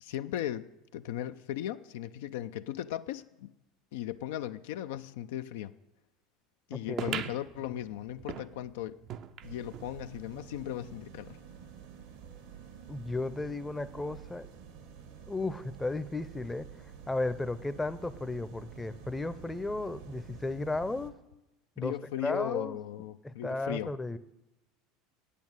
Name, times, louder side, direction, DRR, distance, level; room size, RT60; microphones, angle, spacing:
voice 1, 0.0-3.5 3.9-5.8 6.7-9.0 9.4-11.4 21.8-24.0, left 12 dB, 75° left, 0.4 m, -37 dB
voice 2, 6.9-7.3 12.9-14.5 15.3-16.7 17.1-21.1 21.8-22.0 22.2-22.8 23.2-24.2, left 2 dB, 10° left, 0.6 m, -34 dB
sound 1, 7.0-9.9 10.4-10.5 10.7-10.8 11.6-11.7, right 9 dB, 50° right, 0.6 m, -40 dB
sound 2, 9.4-21.1, right 7 dB, 75° right, 1.6 m, -49 dB
8.4 x 8.3 x 9.0 m
hypercardioid pair, 85°, 0 cm